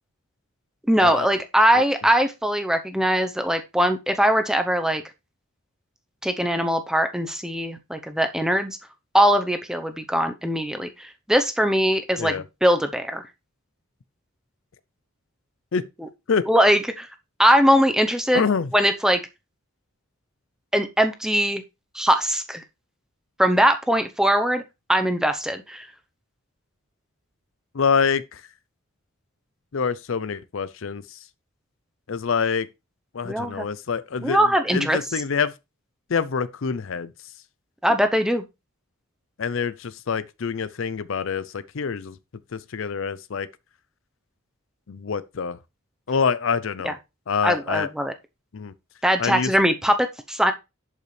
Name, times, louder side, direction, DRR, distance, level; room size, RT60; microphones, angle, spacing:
voice 1, 0.9-5.0 6.2-8.8 9.1-13.2 16.5-17.1 17.4-18.4 18.7-19.2 20.7-21.6 21.9-22.6 23.4-24.6 24.9-25.9 33.2-33.7 34.2-35.0 37.8-38.4 46.8-46.9 47.4-48.1 49.0-50.5, equal, 5° right, 0.8 m, -21 dB
voice 2, 18.3-18.7 27.7-28.4 29.7-31.2 32.1-32.7 33.1-34.4 34.7-35.5 36.1-37.1 39.4-42.2 42.5-43.5 44.9-45.6 46.1-46.9 47.3-47.9 48.5-48.7 49.2-49.5, left 6 dB, 60° left, 0.5 m, -26 dB
11.0 x 5.4 x 3.3 m
head